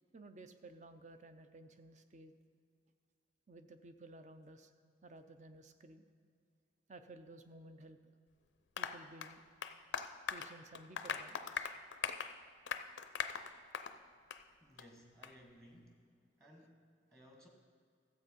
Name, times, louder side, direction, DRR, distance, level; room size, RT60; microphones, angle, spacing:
voice 1, 0.1-2.3 3.5-4.7 5.0-6.0 6.9-8.1 8.8-9.4 10.3-11.7, right 2 dB, 35° right, 9 dB, 0.6 m, -55 dB
Applause, 8.8-14.0 14.3-14.4 14.8-14.9 15.2-15.3, left 6 dB, 65° left, 0.5 m, -41 dB
voice 2, 14.6-16.1 16.4-17.5, equal, 15° right, 1 dB, 1.3 m, -60 dB
13.5 x 7.8 x 5.3 m, 2.3 s
head